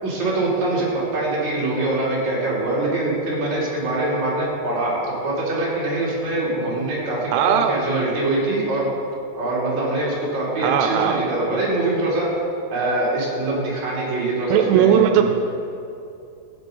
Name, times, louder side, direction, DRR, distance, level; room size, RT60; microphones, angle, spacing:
voice 1, 0.0-5.0 5.2-8.9 9.4-12.3 12.7-15.2, right 2 dB, 45° right, -7 dB, 4.7 m, -23 dB
voice 2, 7.3-7.8 10.6-11.3 14.5-15.2, right 9 dB, 90° right, 6 dB, 2.8 m, -18 dB
16.0 x 8.5 x 5.4 m, 2.6 s
omnidirectional pair, 4.7 m